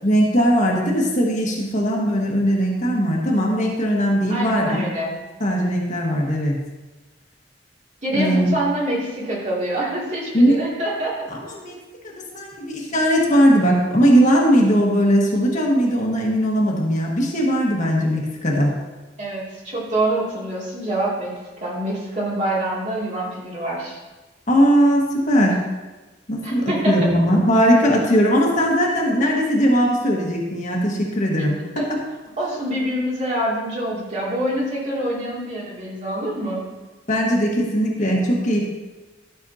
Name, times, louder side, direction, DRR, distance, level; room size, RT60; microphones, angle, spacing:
voice 1, 0.0-4.8 5.4-6.7 8.1-8.5 10.3-10.6 11.3-11.8 12.0-18.7 24.5-25.5 26.3-32.0 37.1-38.7, equal, 45° left, -2 dB, 1.5 m, -19 dB
voice 2, 4.3-5.1 8.0-11.2 19.2-21.3 21.6-24.0 26.4-27.1 31.8-31.9 32.4-36.6, right 1 dB, 40° right, -5 dB, 2.5 m, -25 dB
12.5 x 6.3 x 2.8 m, 1.2 s
head